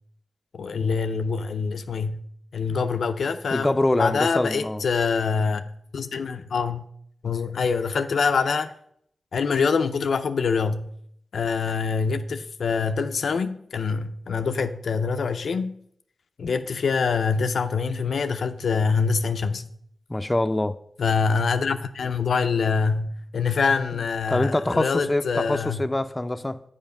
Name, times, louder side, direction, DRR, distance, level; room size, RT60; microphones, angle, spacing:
voice 1, 0.5-2.2 2.5-5.7 5.9-6.8 7.2-8.7 9.3-10.9 11.3-15.8 16.4-19.7 21.0-25.8, left 5 dB, 80° left, 0.4 m, -25 dB
voice 2, 3.5-4.8 20.1-20.8 24.3-26.6, left 1 dB, 25° left, 0.5 m, -24 dB
7.1 x 4.9 x 6.5 m
cardioid pair, 40°, 0 cm